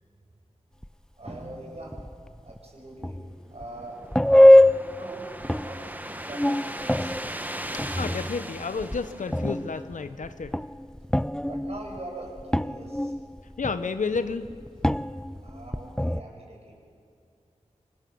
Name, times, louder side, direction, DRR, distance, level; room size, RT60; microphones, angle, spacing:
sound 1, 0.8-0.9 1.3-1.4 1.8-2.6 3.0-3.7 4.0-5.1 5.4-5.9 6.2-9.1 9.3-16.2, left 1 dB, 5° left, 0.6 m, -23 dB
voice 1, 1.2-3.2 3.5-4.0 4.9-5.3 5.6-5.9 6.3-7.1 11.5-13.1 15.4-16.8, right 1 dB, 55° right, -1 dB, 7.6 m, -42 dB
sound 2, 3.4-9.9, right 1 dB, 15° right, 1.5 m, -38 dB
voice 2, 8.0-10.5 13.6-14.5, left 4 dB, 90° left, 11 dB, 1.0 m, -31 dB
25.5 x 21.5 x 7.1 m, 2.4 s
cardioid pair, 40°, 13 cm